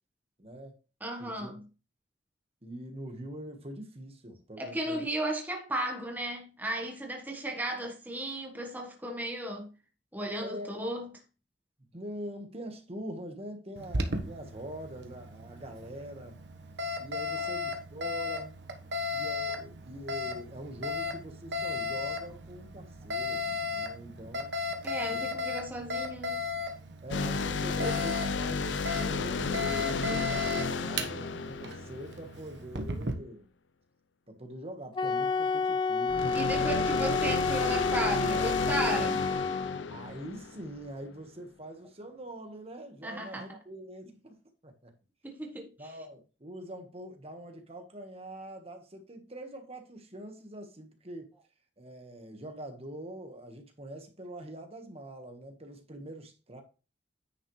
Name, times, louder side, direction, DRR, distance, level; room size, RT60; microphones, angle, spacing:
voice 1, 0.4-0.8 1.2-1.6 2.6-5.1 10.4-10.8 11.9-16.4 17.0-18.5 19.1-24.6 25.1-25.2 27.0-29.6 29.9-33.5 34.3-36.8 39.9-44.9 45.8-51.3 51.8-56.6, right 1 dB, 35° right, 1.4 m, -44 dB
voice 2, 1.0-1.6 4.6-9.7 10.1-11.1 24.8-26.5 36.3-39.2 43.0-43.6 45.2-45.9, right 1 dB, 10° right, 1.2 m, -35 dB
Alarm, 13.8-33.1, left 3 dB, 70° right, 1.2 m, -36 dB
sound 1, 27.1-32.6 36.1-40.8, left 4 dB, 85° left, 0.7 m, -33 dB
Wind instrument woodwind instrument, 34.9-39.8, left 4 dB, 25° left, 0.4 m, -29 dB
9.8 x 5.6 x 3.2 m
head